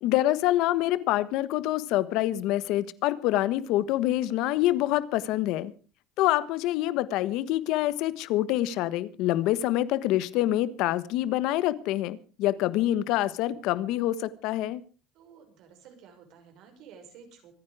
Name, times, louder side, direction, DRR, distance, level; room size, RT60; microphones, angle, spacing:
voice 1, 0.0-5.7 6.2-14.8, left 14 dB, 65° left, 16 dB, 1.3 m, -26 dB
voice 2, 15.1-17.5, right 7 dB, 60° right, 4 dB, 6.0 m, -52 dB
25.5 x 9.8 x 4.9 m, 0.37 s
cardioid pair, 140°, 0 cm